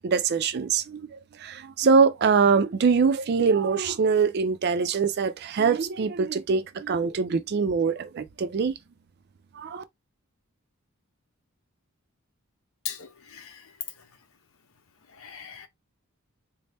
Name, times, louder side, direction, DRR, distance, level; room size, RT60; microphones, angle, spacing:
voice 1, 0.0-8.7 9.6-9.8, right 5 dB, 45° right, 0.4 m, -23 dB
voice 2, 12.8-13.6 15.2-15.7, left 8 dB, 70° left, 0.7 m, -38 dB
4.1 x 2.0 x 3.3 m
head